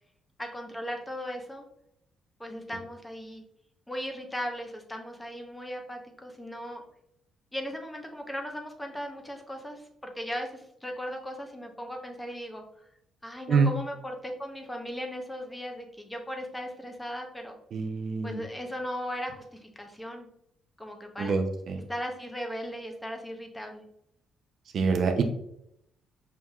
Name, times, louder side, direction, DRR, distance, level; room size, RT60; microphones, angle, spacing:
voice 1, 0.4-1.6 2.4-3.4 3.9-6.8 7.5-12.6 13.2-17.6 18.2-20.3 20.8-21.4 21.9-23.8, equal, 10° left, 3 dB, 0.8 m, -37 dB
voice 2, 17.7-18.4 21.2-21.8 24.7-25.2, right 5 dB, 60° right, 6 dB, 0.5 m, -25 dB
5.6 x 2.7 x 2.3 m, 0.76 s
cardioid pair, 90°, 0 cm